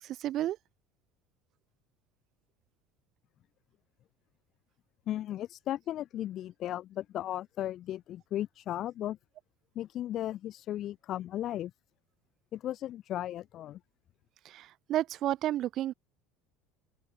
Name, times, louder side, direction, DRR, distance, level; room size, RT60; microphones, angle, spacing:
voice 1, 0.2-0.6 14.4-15.9, right 13 dB, 40° right, 1.5 m, -31 dB
voice 2, 5.1-9.2 9.7-11.7 12.5-13.8, left 12 dB, 40° left, 2.7 m, -36 dB
open air
cardioid pair, 150°, 0 cm